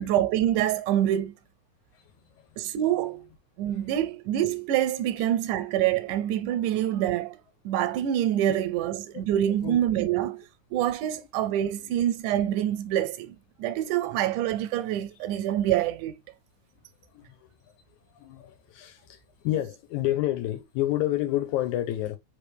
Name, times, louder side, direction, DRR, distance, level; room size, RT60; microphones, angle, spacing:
voice 1, 0.0-1.3 2.6-3.3 3.6-7.4 7.7-10.5 10.7-16.1, right 11 dB, 85° right, 2.1 m, -26 dB
voice 2, 17.1-17.5 18.2-22.2, left 14 dB, 75° left, 2.2 m, -29 dB
4.6 x 3.4 x 3.3 m
omnidirectional pair, 3.5 m